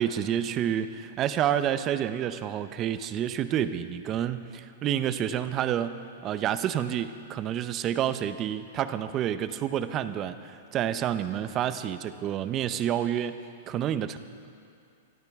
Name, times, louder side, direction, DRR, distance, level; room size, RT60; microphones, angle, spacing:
voice 1, 0.0-13.4 13.7-14.2, right 10 dB, 30° right, 12 dB, 0.6 m, -29 dB
22.5 x 13.5 x 3.6 m, 2.4 s
hypercardioid pair, 135°, 0 cm